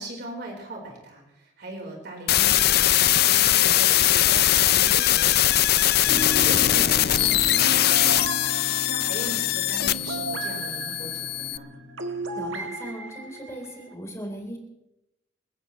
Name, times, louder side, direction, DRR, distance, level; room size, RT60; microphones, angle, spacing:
voice 1, 0.0-11.7, right 1 dB, 55° right, 0 dB, 4.2 m, -39 dB
sound 1, 2.3-11.6, left 13 dB, 55° left, 0.5 m, -21 dB
sound 2, 6.1-12.5, left 3 dB, 5° right, 3.4 m, -37 dB
sound 3, 6.2-13.9, right 2 dB, 80° right, 1.4 m, -36 dB
voice 2, 12.4-14.6, equal, 15° left, 0 dB, 3.8 m, -38 dB
29.0 x 15.0 x 3.2 m, 0.86 s
head